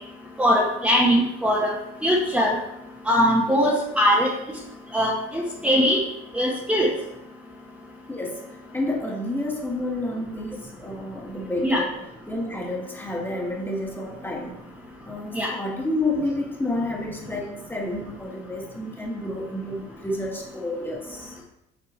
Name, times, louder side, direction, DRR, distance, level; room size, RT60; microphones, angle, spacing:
voice 1, 0.4-1.7 2.0-2.6 3.1-4.3 4.9-6.0 6.3-6.9 11.6-11.8 15.3-15.5, equal, 5° right, -5 dB, 1.2 m, -21 dB
voice 2, 8.1-8.4 8.7-12.0 12.3-14.6 15.0-21.3, left 1 dB, 10° left, -1 dB, 1.8 m, -30 dB
7.1 x 4.2 x 4.5 m, 0.86 s
supercardioid pair, 100°, 20 cm